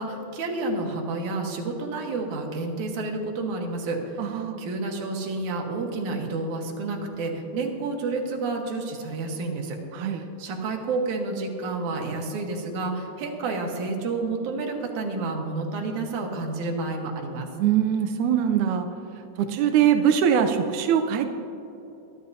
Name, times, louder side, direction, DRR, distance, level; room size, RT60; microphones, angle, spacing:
voice 1, 0.0-17.5, right 3 dB, 65° right, 1 dB, 2.5 m, -30 dB
voice 2, 4.2-4.6 9.9-10.2 17.6-18.9 19.4-21.3, right 9 dB, 80° right, 6 dB, 1.7 m, -22 dB
23.5 x 11.0 x 2.7 m, 3.0 s
omnidirectional pair, 4.2 m